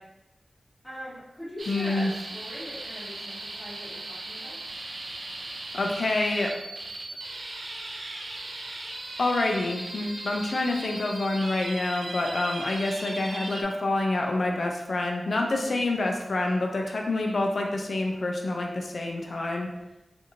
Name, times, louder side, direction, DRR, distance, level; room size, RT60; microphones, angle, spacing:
voice 1, 0.8-4.6 15.5-15.8, equal, 5° left, -12 dB, 1.1 m, -41 dB
sound 1, 1.6-13.6, right 2 dB, 80° right, 0.4 m, -38 dB
voice 2, 1.7-2.1 5.7-6.5 9.2-19.7, left 2 dB, 70° left, 1 dB, 0.3 m, -27 dB
2.8 x 2.5 x 2.5 m, 0.94 s
wide cardioid pair, 65°, 0 cm